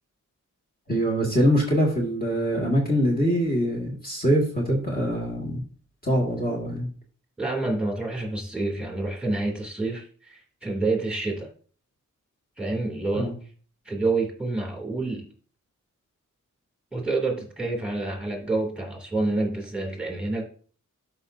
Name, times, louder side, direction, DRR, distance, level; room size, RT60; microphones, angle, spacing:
voice 1, 0.9-5.6 6.0-6.9 13.2-13.3, equal, 30° left, -3 dB, 1.9 m, -23 dB
voice 2, 7.4-11.5 12.6-13.3 13.8-15.3 16.9-20.5, right 2 dB, 5° right, 0 dB, 2.7 m, -28 dB
13.0 x 5.3 x 2.7 m, 0.44 s
wide cardioid pair, 105°, 31 cm